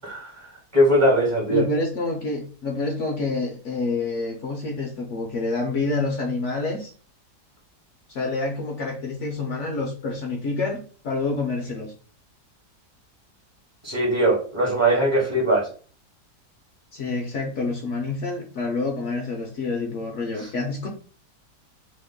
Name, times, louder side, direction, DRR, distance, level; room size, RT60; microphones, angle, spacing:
voice 1, 0.0-0.5 0.7-1.6 13.8-15.7 20.4-20.5, right 1 dB, 30° right, -3 dB, 0.5 m, -20 dB
voice 2, 1.5-6.9 8.1-11.9 16.9-20.9, left 3 dB, 65° left, 1 dB, 0.7 m, -27 dB
3.0 x 2.1 x 3.5 m, 0.41 s
omnidirectional pair, 1.8 m